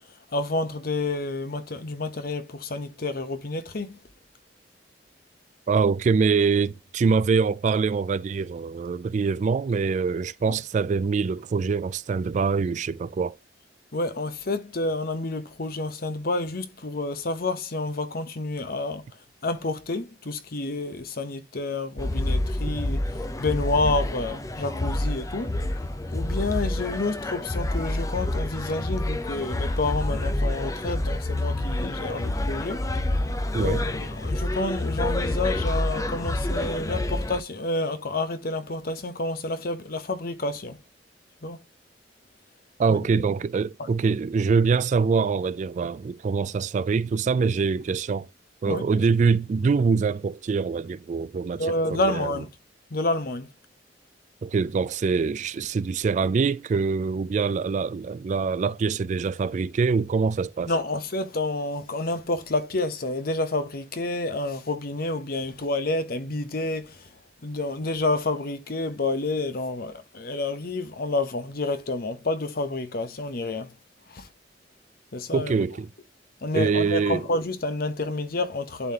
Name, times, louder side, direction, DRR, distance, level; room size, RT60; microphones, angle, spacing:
voice 1, 0.3-4.0 10.4-10.6 13.9-19.0 19.4-23.0 23.4-25.5 26.1-32.9 33.6-40.8 41.4-41.6 42.9-43.3 43.8-43.9 48.6-48.9 51.6-52.5 52.9-53.5 60.7-67.1 67.4-73.7 74.1-74.3 75.1-75.5 76.4-78.9, left 2 dB, 55° left, 0.9 m, -29 dB
voice 2, 5.7-13.4 33.5-33.8 42.8-48.3 48.6-52.3 54.4-60.7 75.3-75.9 76.5-77.3, right 5 dB, 45° right, 0.3 m, -24 dB
sound 1, 22.0-37.4, left 1 dB, 20° left, 0.5 m, -28 dB
11.0 x 3.7 x 2.8 m
head